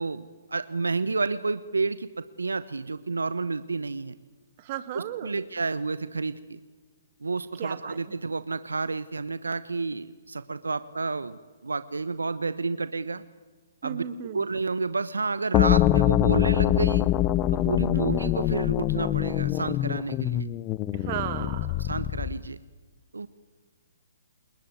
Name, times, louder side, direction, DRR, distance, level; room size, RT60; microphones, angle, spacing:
voice 1, 0.0-4.1 4.9-6.6 7.2-13.2 13.8-17.1 17.5-20.5 21.8-22.6 23.1-23.3, right 3 dB, 85° right, 15 dB, 1.0 m, -30 dB
voice 2, 4.6-5.4 7.6-8.0 13.8-14.5 17.9-18.2 20.9-21.9, right 11 dB, 40° right, 11 dB, 2.5 m, -35 dB
sound 1, 15.5-22.4, left 14 dB, 25° left, 0.8 m, -24 dB
28.5 x 21.5 x 9.4 m, 1.4 s
figure-of-eight pair, 135°, 0 cm